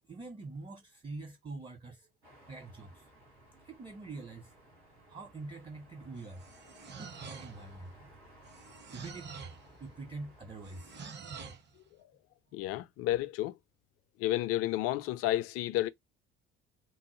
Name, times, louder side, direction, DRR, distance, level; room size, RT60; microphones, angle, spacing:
voice 1, 0.1-2.1 2.4-3.1 3.6-4.5 5.0-6.5 7.0-8.1 8.9-9.5 9.8-11.0, right 3 dB, 15° right, 0.7 m, -45 dB
sound 1, 2.2-11.1, equal, 80° right, 1.9 m, -58 dB
sound 2, 6.1-7.7 8.4-9.7 10.6-11.7, right 5 dB, 35° right, 1.1 m, -47 dB
voice 2, 12.5-13.6 14.2-15.9, left 14 dB, 45° left, 0.4 m, -31 dB
3.8 x 2.1 x 3.0 m
figure-of-eight pair, 55°, 32 cm